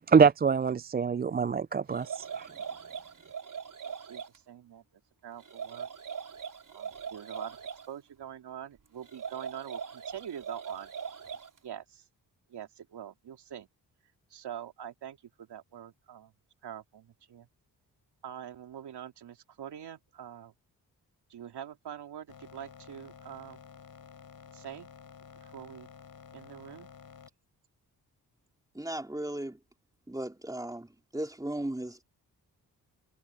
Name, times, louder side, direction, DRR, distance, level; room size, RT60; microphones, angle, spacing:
voice 1, 0.1-2.5, right 6 dB, 25° right, 0.4 m, -24 dB
sound 1, 1.9-4.4 5.4-7.9 9.0-11.6, right 7 dB, 55° right, 4.3 m, -41 dB
voice 2, 3.8-4.8 5.2-5.9 6.7-7.6 7.9-10.9 11.6-12.0 12.5-13.7 14.3-16.3 16.6-17.5 18.2-20.5 21.3-23.6 24.5-24.9 25.4-25.9 26.3-26.9, right 9 dB, 80° right, 2.8 m, -44 dB
sound 2, 22.3-27.3, left 6 dB, 60° left, 4.7 m, -51 dB
voice 3, 28.7-29.6 30.1-32.0, right 1 dB, 10° right, 3.4 m, -36 dB
cardioid pair, 60°, 39 cm